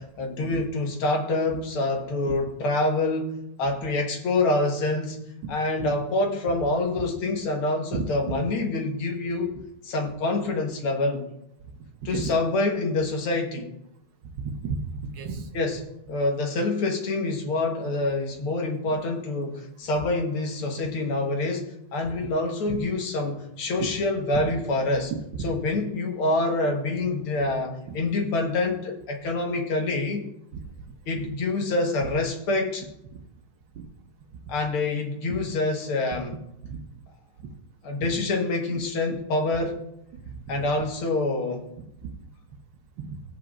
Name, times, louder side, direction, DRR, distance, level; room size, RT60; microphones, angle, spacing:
voice 1, 0.0-5.2 5.5-9.5 9.8-11.3 12.1-13.7 15.5-15.8 16.1-25.1 25.4-30.3 31.1-32.8 34.5-36.3 37.8-39.9 40.5-41.7, left 2 dB, 80° left, 3 dB, 2.2 m, -26 dB
voice 2, 14.2-15.5 18.9-19.0 22.7-22.8 23.8-23.9 25.3-25.5 27.9-28.0 35.3-35.4 36.7-36.8 38.0-38.2 39.1-39.2 40.1-40.8 42.0-42.1 43.0-43.2, right 5 dB, 65° right, 5 dB, 1.5 m, -33 dB
15.5 x 8.1 x 2.5 m, 0.79 s
omnidirectional pair, 2.4 m